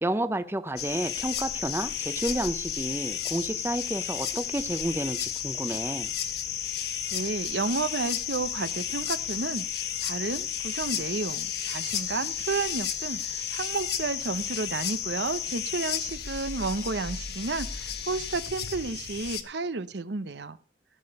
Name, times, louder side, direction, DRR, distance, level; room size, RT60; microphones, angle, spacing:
voice 1, 0.0-6.1, right 1 dB, 15° right, 0.6 m, -31 dB
sound 1, 0.8-19.4, left 9 dB, 60° left, 1.3 m, -33 dB
voice 2, 7.1-20.6, right 4 dB, 70° right, 0.7 m, -32 dB
16.0 x 6.8 x 5.4 m
head